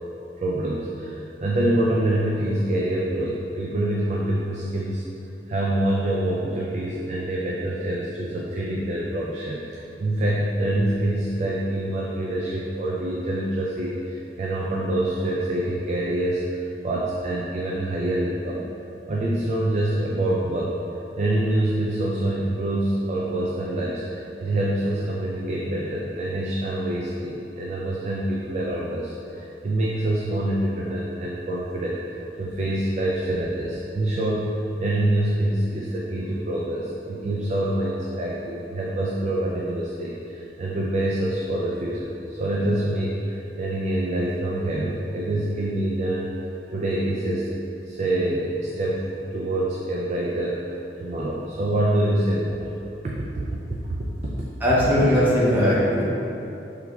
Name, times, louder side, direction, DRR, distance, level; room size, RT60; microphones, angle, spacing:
voice 1, 0.4-5.0 5.5-18.7 19.1-20.8 21.2-46.3 46.7-47.5 47.9-50.7 51.0-52.7 53.0-54.1 54.4-54.5, right 1 dB, 40° right, -3 dB, 0.4 m, -26 dB
voice 2, 54.6-56.0, equal, 10° right, -9 dB, 0.9 m, -19 dB
6.1 x 3.4 x 2.3 m, 2.9 s
head